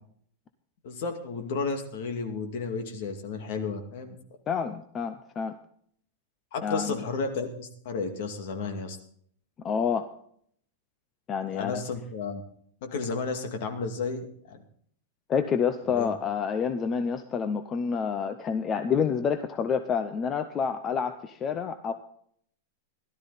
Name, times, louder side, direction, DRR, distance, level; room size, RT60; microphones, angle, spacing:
voice 1, 0.8-4.2 6.5-9.0 11.5-12.4 12.8-14.6 15.9-16.1, left 4 dB, 50° left, 5 dB, 2.3 m, -32 dB
voice 2, 4.5-5.6 6.6-7.0 9.6-10.1 11.3-11.8 15.3-21.9, left 6 dB, 15° left, 9 dB, 0.6 m, -28 dB
16.5 x 12.5 x 4.1 m, 0.63 s
supercardioid pair, 180°, 0 cm